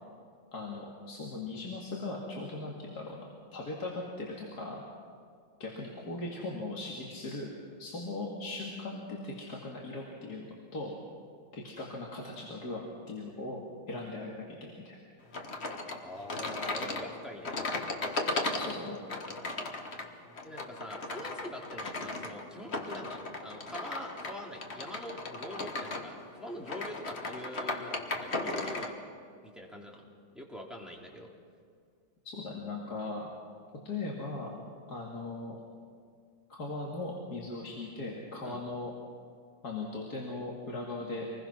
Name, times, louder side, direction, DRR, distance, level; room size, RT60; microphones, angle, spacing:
voice 1, 0.5-3.2 3.5-4.8 5.6-7.5 7.8-10.9 11.5-13.6 13.9-15.0 18.5-19.0 32.2-33.3 33.8-34.5 34.9-35.6 36.5-38.9 39.6-41.5, left 2 dB, 50° left, -2 dB, 2.7 m, -39 dB
sound 1, 15.3-28.9, left 2 dB, 35° left, 1.6 m, -36 dB
voice 2, 16.0-17.6 20.4-29.0 29.4-30.0 30.3-31.3 38.4-38.6, equal, ahead, -2 dB, 2.9 m, -44 dB
26.5 x 20.5 x 6.0 m, 2.2 s
omnidirectional pair, 2.2 m